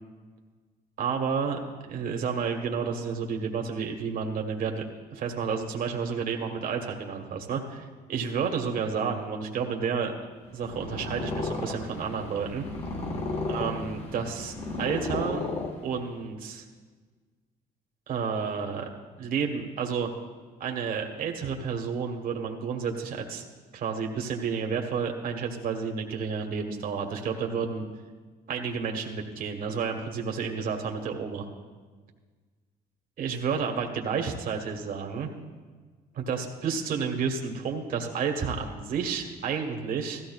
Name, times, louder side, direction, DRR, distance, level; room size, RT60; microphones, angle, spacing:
voice 1, 1.0-4.8 5.1-10.1 10.5-12.6 13.5-15.5 15.8-16.6 18.1-18.9 19.2-20.1 20.6-23.4 23.7-27.8 28.5-31.5 33.2-35.3 36.1-40.2, right 6 dB, 55° right, 3 dB, 1.4 m, -31 dB
Purr, 10.5-16.2, left 2 dB, 40° left, 1.4 m, -34 dB
16.0 x 14.0 x 2.4 m, 1.4 s
cardioid pair, 110°, 17 cm